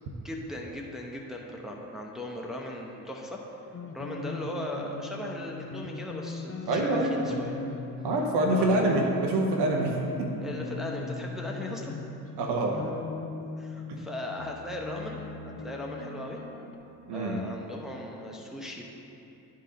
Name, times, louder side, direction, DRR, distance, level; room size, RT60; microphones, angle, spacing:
voice 1, 0.2-3.4 3.9-7.5 8.5-8.9 10.4-11.9 13.6-15.2 15.6-16.4 17.1-18.8, left 1 dB, ahead, -1 dB, 0.9 m, -38 dB
sound 1, 3.7-16.8, left 3 dB, 30° left, 0.7 m, -39 dB
voice 2, 6.7-7.1 8.0-10.3 12.4-12.8 13.9-14.1 17.1-17.4, right 2 dB, 65° right, 1 dB, 1.0 m, -26 dB
10.5 x 3.8 x 4.2 m, 2.8 s
supercardioid pair, 55°, 43 cm